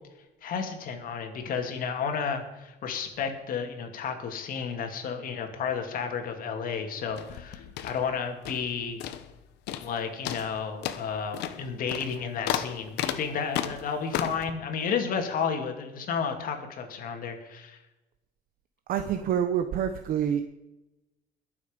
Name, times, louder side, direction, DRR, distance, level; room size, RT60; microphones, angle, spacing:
voice 1, 0.4-9.0 9.8-17.8, left 6 dB, 50° left, 5 dB, 2.5 m, -32 dB
sound 1, 7.1-8.7 9.0-9.4 9.7-10.0 10.2-14.5, left 11 dB, 75° left, 1.2 m, -34 dB
voice 2, 18.9-20.4, right 9 dB, 55° right, 7 dB, 1.0 m, -27 dB
21.5 x 7.4 x 5.3 m, 1.0 s
cardioid pair, 135°, 18 cm